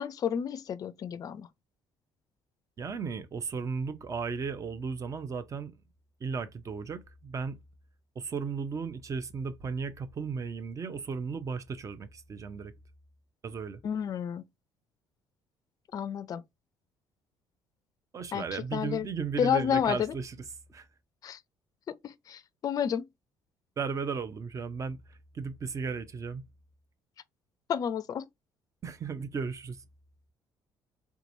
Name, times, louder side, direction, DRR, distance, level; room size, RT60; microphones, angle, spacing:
voice 1, 0.0-1.5 13.8-14.4 15.9-16.4 18.3-19.1 19.4-20.1 21.2-21.4 21.9-23.1 27.7-28.2, left 8 dB, 45° left, 0.4 m, -30 dB
voice 2, 2.8-5.7 6.2-7.6 8.2-12.7 13.4-13.8 18.1-20.4 20.7-20.9 23.8-26.4 28.8-29.8, right 5 dB, 40° right, 0.7 m, -35 dB
3.5 x 2.9 x 2.6 m
supercardioid pair, 80°, 9 cm